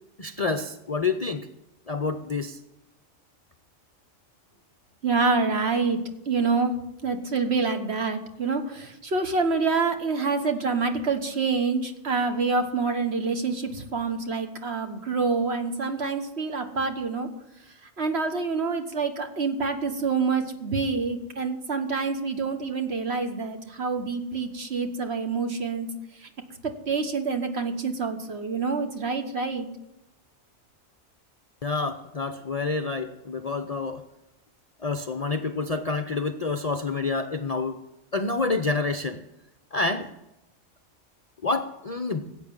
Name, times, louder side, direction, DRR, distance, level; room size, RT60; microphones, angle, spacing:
voice 1, 0.2-1.5 1.9-2.6 31.6-34.0 34.8-37.8 38.1-39.2 39.7-40.1 41.4-42.3, left 3 dB, 40° left, 8 dB, 0.5 m, -28 dB
voice 2, 5.0-6.0 6.3-6.7 7.0-17.3 18.0-25.9 26.2-26.3 26.9-29.7, right 4 dB, 55° right, 6 dB, 1.6 m, -27 dB
15.5 x 8.4 x 7.3 m, 0.91 s
omnidirectional pair, 1.4 m